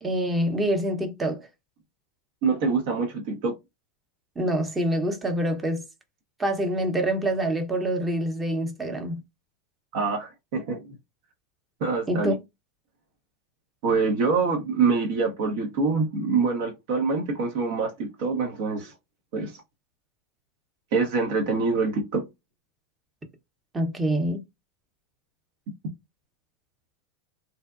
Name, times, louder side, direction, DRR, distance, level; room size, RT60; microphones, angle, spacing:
voice 1, 0.0-1.5 4.4-5.9 6.4-9.2 12.1-12.3 23.7-24.4, right 1 dB, 15° right, 0.8 m, -26 dB
voice 2, 2.4-3.5 9.9-10.8 11.8-12.3 13.8-18.9 19.3-19.5 20.9-22.2, right 4 dB, 65° right, 0.8 m, -25 dB
2.7 x 2.1 x 2.4 m
hypercardioid pair, 100°, 0 cm